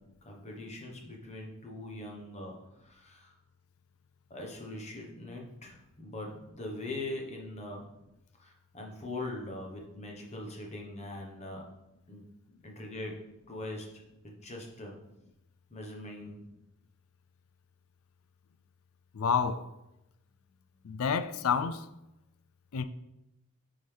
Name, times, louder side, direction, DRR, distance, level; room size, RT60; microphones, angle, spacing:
voice 1, 0.2-2.5 2.8-3.3 4.3-7.9 8.4-11.6 12.1-12.3 12.6-13.2 13.5-13.9 14.2-15.0 15.7-16.4, left 2 dB, 30° left, 1.2 m, -41 dB
voice 2, 19.1-19.7 20.8-21.9 22.7-22.8, left 6 dB, 75° left, 0.4 m, -29 dB
9.2 x 3.8 x 3.4 m
head